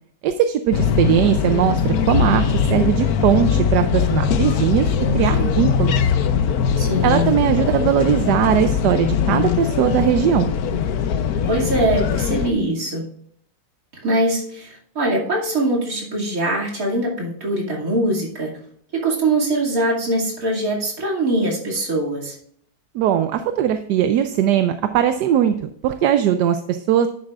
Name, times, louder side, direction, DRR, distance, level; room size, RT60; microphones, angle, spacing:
voice 1, 0.2-4.9 5.1-6.0 7.0-10.5 22.9-25.5 25.8-27.1, right 10 dB, 75° right, 9 dB, 1.2 m, -19 dB
sound 1, 0.7-12.5, left 7 dB, 65° left, 1.1 m, -21 dB
voice 2, 5.0-5.6 6.8-7.4 11.5-13.1 13.9-18.6 18.9-22.4, right 1 dB, 50° right, -3 dB, 2.9 m, -22 dB
10.5 x 8.7 x 2.4 m, 0.66 s
omnidirectional pair, 1.9 m